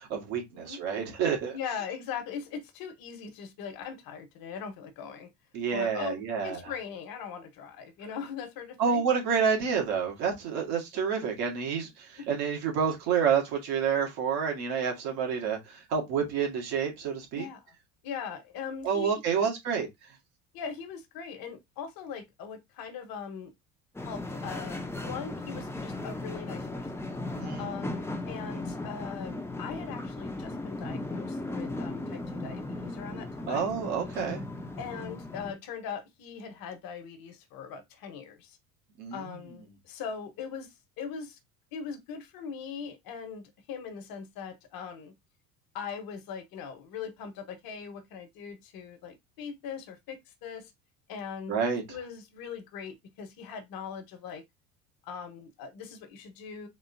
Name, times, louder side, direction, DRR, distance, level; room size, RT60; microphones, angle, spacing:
voice 1, 0.1-1.6 5.5-6.7 8.8-17.5 18.8-19.9 27.3-27.8 33.5-34.4 39.0-39.2 51.5-51.8, right 6 dB, 60° right, 1.9 m, -29 dB
voice 2, 1.5-5.3 5.7-9.0 12.2-12.4 17.3-17.6 18.0-19.5 20.5-23.5 24.0-26.9 27.6-33.7 34.8-38.6 39.1-41.4 41.7-45.1 45.7-50.7 51.1-51.5 51.9-54.4 55.0-56.7, left 6 dB, 55° left, 1.2 m, -40 dB
sound 1, 23.9-35.5, left 2 dB, 5° left, 0.8 m, -37 dB
4.2 x 3.4 x 2.7 m
hypercardioid pair, 70°, 43 cm